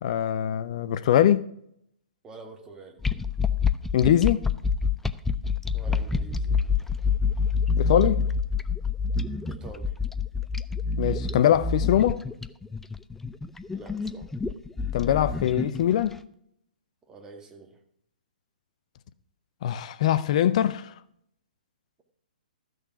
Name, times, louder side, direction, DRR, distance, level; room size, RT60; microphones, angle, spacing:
voice 1, 0.0-1.5 3.9-4.5 7.8-8.2 11.0-12.2 14.9-16.2 19.6-20.9, left 11 dB, 50° left, 0.6 m, -22 dB
voice 2, 2.2-3.0 5.7-6.6 9.5-9.9 13.7-14.3 17.1-17.8, right 3 dB, 15° right, 2.0 m, -46 dB
sound 1, 3.0-16.1, left 5 dB, 5° left, 0.5 m, -27 dB
14.0 x 6.4 x 5.8 m
figure-of-eight pair, 125°, 5 cm